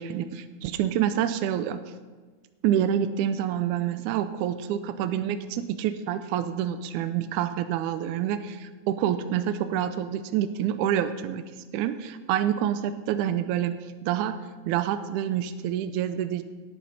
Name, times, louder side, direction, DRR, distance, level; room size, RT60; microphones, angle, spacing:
voice 1, 0.0-1.8 2.6-11.4 11.7-13.8 14.0-14.4 14.7-16.4, right 10 dB, 85° right, 10 dB, 2.0 m, -27 dB
17.5 x 9.5 x 4.1 m, 1.4 s
omnidirectional pair, 3.5 m